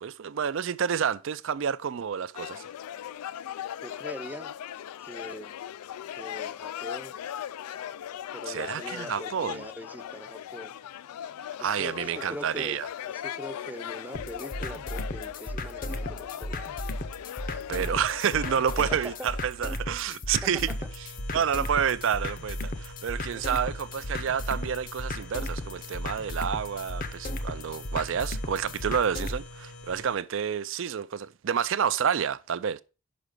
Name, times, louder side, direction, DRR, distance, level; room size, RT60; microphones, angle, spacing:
voice 1, 0.0-2.6 8.5-9.7 11.6-12.9 17.7-20.7 21.3-32.8, right 8 dB, 60° right, 0.4 m, -29 dB
sound 1, 2.3-19.4, left 10 dB, 90° left, 0.3 m, -39 dB
voice 2, 3.8-4.5 5.0-5.5 6.1-7.2 8.3-10.7 11.6-12.8 13.1-16.7 18.8-19.3 21.3-21.4 23.3-23.4, equal, 10° right, 0.5 m, -42 dB
sound 2, 14.1-29.4, left 1 dB, 40° left, 0.7 m, -35 dB
sound 3, 20.7-30.2, left 2 dB, 65° left, 1.3 m, -46 dB
5.9 x 5.0 x 6.6 m
head